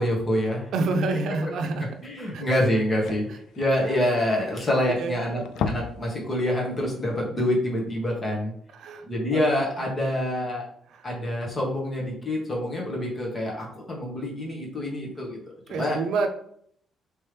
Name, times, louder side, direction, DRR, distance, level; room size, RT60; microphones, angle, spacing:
voice 1, 0.0-0.7 2.0-3.3 3.6-5.4 5.7-8.5 9.1-10.7 11.0-15.4 15.7-16.0, left 1 dB, 30° left, -2 dB, 1.5 m, -26 dB
voice 2, 0.7-1.9 2.3-2.5 3.9-4.0 5.0-5.4 8.7-9.0 9.3-9.4 10.9-11.1 15.7-16.3, right 3 dB, 75° right, 5 dB, 0.6 m, -27 dB
sound 1, 2.0-2.1 2.4-2.5 2.7-5.0 5.3-6.1 6.4-6.6 7.0-7.1, left 6 dB, 85° left, 0.3 m, -34 dB
3.4 x 3.2 x 3.3 m, 0.66 s
cardioid pair, 90°, 0 cm